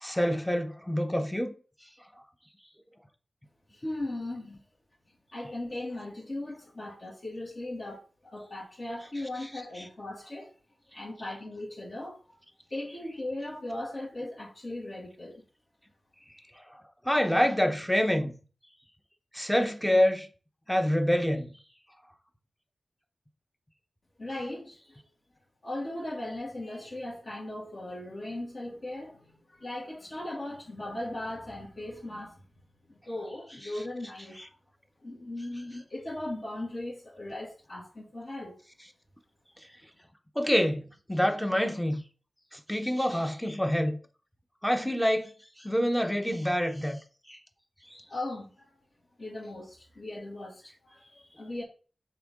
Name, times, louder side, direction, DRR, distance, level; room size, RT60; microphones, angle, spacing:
voice 1, 0.0-1.5 17.0-18.3 19.3-20.3 20.7-21.5 40.4-42.0 42.5-44.0 44.6-45.3 45.6-47.0 47.3-47.4 47.9-48.0, equal, 5° left, 0.9 m, -26 dB
voice 2, 3.7-4.6 5.3-10.5 10.9-12.4 12.7-15.4 24.2-25.0 25.6-32.5 32.9-34.4 35.0-38.6 48.1-48.7 49.2-51.6, left 1 dB, 50° left, 2.5 m, -38 dB
6.7 x 4.4 x 3.7 m
wide cardioid pair, 85°, 0 cm